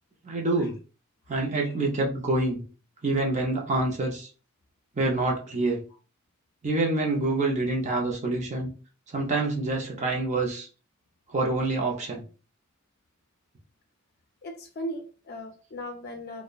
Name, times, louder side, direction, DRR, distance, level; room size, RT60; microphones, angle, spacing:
voice 1, 0.2-0.8 1.3-2.6 3.0-4.3 5.0-5.8 6.6-8.7 9.1-10.7 11.3-12.2, right 2 dB, 35° right, 0.5 m, -26 dB
voice 2, 14.4-16.4, equal, 45° left, 0.5 m, -38 dB
2.8 x 2.1 x 2.3 m
head